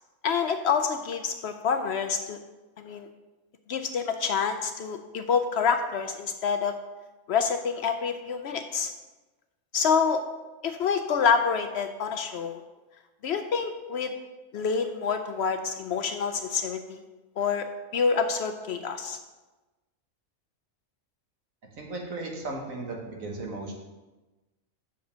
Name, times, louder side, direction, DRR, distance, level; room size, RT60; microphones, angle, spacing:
voice 1, 0.2-2.4 2.8-3.1 3.7-6.7 7.3-8.9 9.7-10.2 10.6-12.6 13.2-14.1 14.5-17.0 17.4-17.7 17.9-19.2, left 6 dB, 65° left, 7 dB, 0.7 m, -27 dB
voice 2, 21.8-23.7, right 2 dB, 85° right, 0 dB, 1.8 m, -36 dB
6.1 x 5.2 x 6.7 m, 1.1 s
omnidirectional pair, 1.4 m